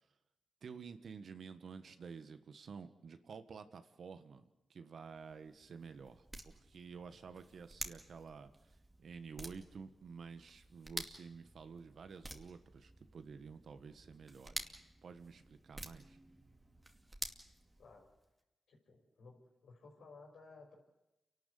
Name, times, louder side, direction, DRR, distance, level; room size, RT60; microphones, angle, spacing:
voice 1, 0.6-4.4 4.7-16.2, right 5 dB, 65° right, 10 dB, 1.5 m, -51 dB
sound 1, 5.1-18.3, right 1 dB, 25° right, 2.5 m, -50 dB
voice 2, 18.7-20.8, left 3 dB, 75° left, 1 dB, 5.8 m, -57 dB
29.0 x 12.5 x 8.4 m, 0.94 s
supercardioid pair, 45°, 0 cm